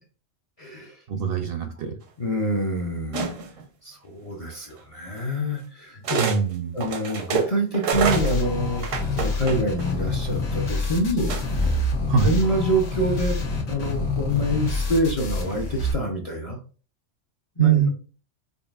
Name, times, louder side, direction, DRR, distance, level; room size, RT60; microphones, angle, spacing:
voice 1, 0.6-1.0 2.2-3.3 3.8-6.2 6.7-8.8 9.2-11.4 12.2-16.6 17.6-17.9, equal, 45° left, 0 dB, 0.5 m, -26 dB
voice 2, 1.1-1.9 6.2-6.8 12.1-12.4 17.6-17.9, right 8 dB, 60° right, 5 dB, 0.6 m, -22 dB
sound 1, 3.1-3.6 4.8-4.9 6.0-6.4 6.8-9.9 11.3-11.7, right 6 dB, 85° right, 1.1 m, -27 dB
sound 2, 7.9-15.9, left 3 dB, 80° left, 1.3 m, -27 dB
5.2 x 2.6 x 2.4 m, 0.38 s
omnidirectional pair, 1.3 m